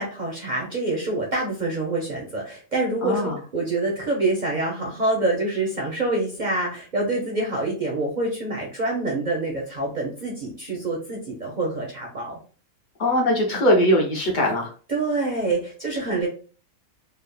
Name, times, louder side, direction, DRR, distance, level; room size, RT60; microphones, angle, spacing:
voice 1, 0.0-12.4 14.9-16.3, right 2 dB, 55° right, -1 dB, 0.5 m, -26 dB
voice 2, 3.0-3.4 13.0-14.7, equal, 45° left, 0 dB, 0.7 m, -20 dB
3.3 x 2.0 x 2.2 m, 0.39 s
omnidirectional pair, 1.5 m